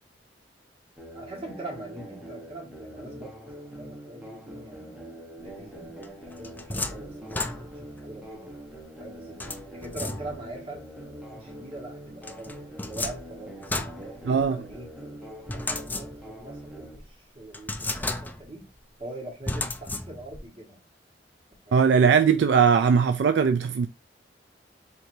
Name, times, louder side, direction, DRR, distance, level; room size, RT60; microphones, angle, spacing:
sound 1, 1.0-17.0, right 1 dB, 5° right, 1.0 m, -44 dB
voice 1, 1.1-3.3 3.7-8.5 9.0-9.4 9.7-10.8 11.3-14.9 15.5-18.7 19.0-20.8, right 2 dB, 30° right, 1.5 m, -43 dB
sound 2, 6.0-8.0 9.4-10.6 12.2-14.7 15.5-16.5 16.9-17.0 17.5-18.6 19.5-20.5, left 2 dB, 10° left, 0.4 m, -34 dB
voice 2, 14.3-14.6 21.7-23.9, right 6 dB, 70° right, 0.3 m, -20 dB
4.5 x 2.8 x 2.7 m
head